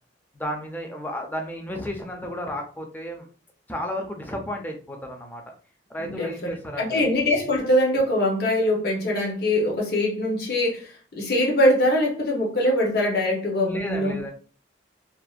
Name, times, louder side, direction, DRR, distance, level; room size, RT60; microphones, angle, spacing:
voice 1, 0.3-3.3 3.7-5.4 5.9-7.0 13.6-14.3, left 1 dB, 10° left, 2 dB, 0.4 m, -33 dB
voice 2, 6.0-6.5 6.8-14.1, left 1 dB, 60° left, -1 dB, 0.8 m, -23 dB
2.6 x 2.1 x 2.4 m, 0.39 s
head